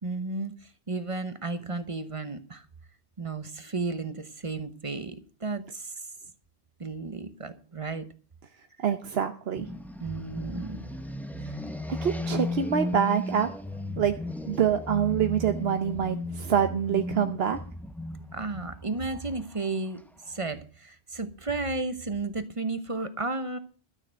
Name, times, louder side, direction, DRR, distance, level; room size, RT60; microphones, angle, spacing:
voice 1, 0.0-2.7 3.2-6.0 6.8-8.1 10.0-10.9 18.3-23.6, right 3 dB, 30° right, 1.0 m, -33 dB
voice 2, 8.8-9.7 11.5-11.6 12.0-13.5 14.0-14.1 14.5-17.6, right 8 dB, 70° right, 1.0 m, -26 dB
sound 1, 9.5-20.3, left 1 dB, ahead, 0.8 m, -35 dB
13.0 x 6.6 x 7.5 m
omnidirectional pair, 1.1 m